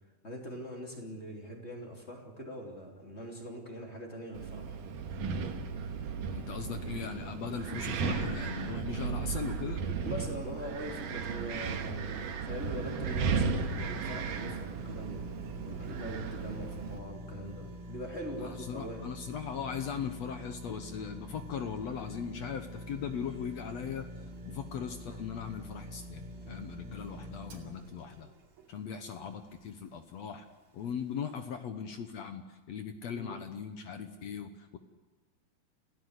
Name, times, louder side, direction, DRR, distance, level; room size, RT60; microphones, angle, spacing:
voice 1, 0.2-4.8 10.0-15.2 15.6-19.0 33.1-33.4, equal, 20° left, 1 dB, 3.0 m, -42 dB
Wind, 4.4-17.0, right 5 dB, 70° right, 3.1 m, -35 dB
voice 2, 6.3-9.8 18.4-24.1 24.5-28.3 28.7-30.5 30.7-34.8, left 7 dB, 65° left, 8 dB, 1.9 m, -39 dB
sound 1, 12.6-29.8 30.2-30.3, equal, 85° right, 4.4 m, -46 dB
28.0 x 17.0 x 8.1 m, 1.3 s
omnidirectional pair, 4.1 m